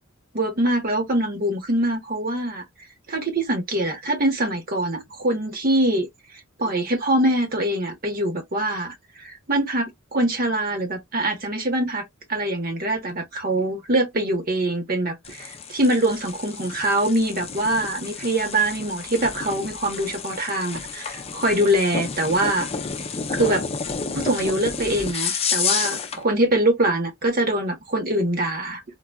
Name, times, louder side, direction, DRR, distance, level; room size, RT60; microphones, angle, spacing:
voice 1, 0.3-2.6 3.1-6.1 6.6-8.9 9.2-22.7 23.4-23.6 24.1-29.0, right 1 dB, 45° right, 1.2 m, -23 dB
sound 1, 15.2-26.2, left 6 dB, 30° left, 0.6 m, -30 dB
3.8 x 2.4 x 2.3 m
head